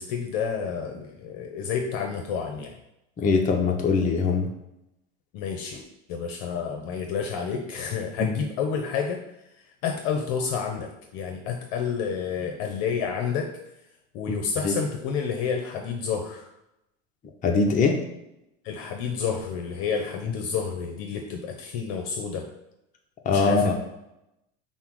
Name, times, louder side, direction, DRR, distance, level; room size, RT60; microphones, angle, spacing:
voice 1, 0.0-2.8 5.3-5.8 6.1-9.2 9.8-13.5 14.1-16.5 18.6-22.5 23.3-23.7, left 6 dB, 60° left, 3 dB, 0.7 m, -30 dB
voice 2, 3.2-4.5 8.2-8.4 14.3-14.4 14.6-14.7 17.4-18.0 23.2-23.7, left 4 dB, 25° left, 2 dB, 0.7 m, -22 dB
5.5 x 2.1 x 4.6 m, 0.87 s
supercardioid pair, 115°, 31 cm